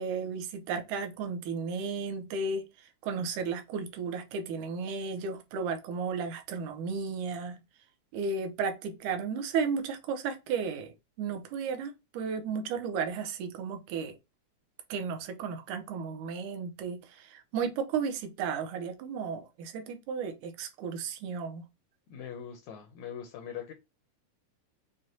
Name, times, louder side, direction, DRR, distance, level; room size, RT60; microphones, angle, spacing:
voice 1, 0.0-7.6 8.1-14.2 14.9-21.6, right 5 dB, 75° right, 2.2 m, -34 dB
voice 2, 22.1-23.7, left 8 dB, 75° left, 1.7 m, -41 dB
6.3 x 2.2 x 2.7 m
omnidirectional pair, 3.7 m